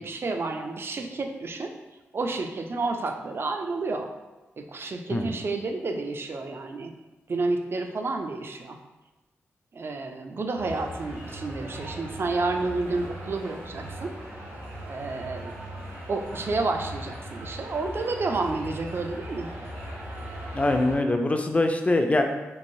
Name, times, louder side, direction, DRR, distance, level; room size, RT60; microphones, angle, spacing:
voice 1, 0.0-1.7 2.1-4.1 4.6-6.9 7.3-8.8 9.7-14.1 14.8-15.5 16.1-19.5, right 3 dB, 50° right, 5 dB, 0.4 m, -30 dB
sound 1, 10.6-20.9, right 1 dB, 70° right, 1.4 m, -39 dB
voice 2, 20.5-22.2, left 2 dB, 25° left, 5 dB, 0.4 m, -23 dB
3.1 x 2.6 x 2.6 m, 1.1 s
cardioid pair, 50°, 5 cm